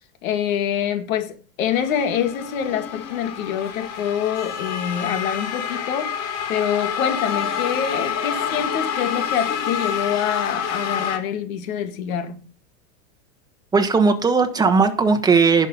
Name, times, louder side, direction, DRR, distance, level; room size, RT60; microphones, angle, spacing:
voice 1, 0.2-12.4, left 9 dB, 75° left, 2.3 m, -25 dB
sound 1, 1.7-11.2, left 7 dB, 35° left, 2.3 m, -28 dB
voice 2, 13.7-15.7, right 4 dB, 10° right, 1.2 m, -17 dB
11.0 x 6.0 x 5.6 m
supercardioid pair, 150°, 41 cm